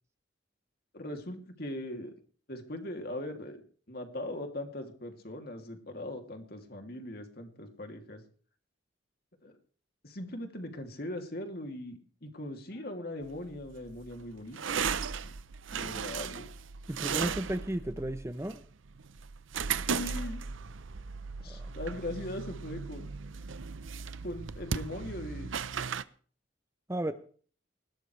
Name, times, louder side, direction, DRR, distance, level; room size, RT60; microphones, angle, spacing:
voice 1, 0.9-2.1 2.5-3.6 3.9-8.2 9.4-9.6 10.0-15.3 15.7-16.5 19.9-20.4 21.4-23.1 24.2-25.5 27.0-27.1, left 1 dB, 50° left, 4 dB, 2.7 m, -40 dB
sound 1, 13.2-26.0, right 6 dB, 90° right, 0.7 m, -37 dB
voice 2, 16.9-18.6 21.4-22.0 26.9-27.1, right 1 dB, 15° right, 10 dB, 0.7 m, -34 dB
20.0 x 17.0 x 3.3 m, 0.44 s
head